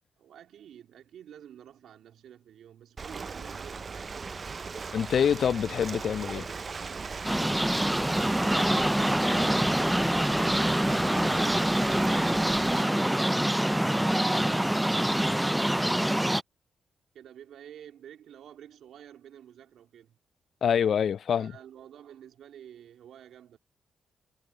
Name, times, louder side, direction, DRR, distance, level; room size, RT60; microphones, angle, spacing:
voice 1, 0.2-4.2 17.1-20.2 21.4-23.6, right 10 dB, 70° right, 2.8 m, -51 dB
Ocean, 3.0-12.8, right 4 dB, 45° right, 0.6 m, -37 dB
voice 2, 4.9-6.5 20.6-21.5, left 8 dB, 65° left, 0.5 m, -26 dB
sound 1, 7.2-16.4, right 1 dB, 5° right, 0.5 m, -25 dB
hypercardioid pair, 45°, 0 cm